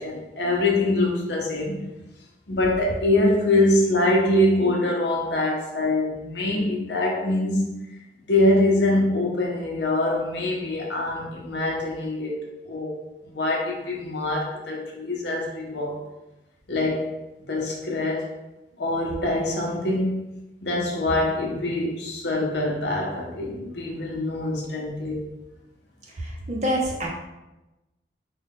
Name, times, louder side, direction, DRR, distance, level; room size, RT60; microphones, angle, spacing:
voice 1, 0.0-1.9 2.5-7.8 8.2-12.4 12.7-12.9 13.2-16.0 16.7-17.1 17.4-18.3 18.8-20.2 20.6-25.2, left 1 dB, 75° left, -2 dB, 0.8 m, -24 dB
voice 2, 26.2-27.1, equal, 40° right, -1 dB, 0.6 m, -26 dB
3.9 x 2.3 x 3.5 m, 0.99 s
head